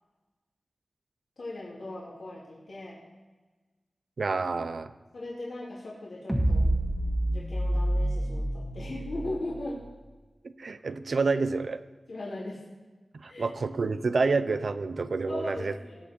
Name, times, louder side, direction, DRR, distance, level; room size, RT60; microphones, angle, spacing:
voice 1, 1.4-3.0 5.1-6.7 7.3-9.8 12.1-12.6 13.3-13.5 15.2-16.1, left 1 dB, 80° left, -6 dB, 2.8 m, -38 dB
voice 2, 4.2-4.9 10.4-11.8 13.1-15.7, right 4 dB, 75° right, 11 dB, 0.6 m, -28 dB
sound 1, 6.3-9.7, right 1 dB, 15° right, 1.8 m, -28 dB
18.5 x 7.1 x 4.5 m, 1.2 s
cardioid pair, 55°, 0 cm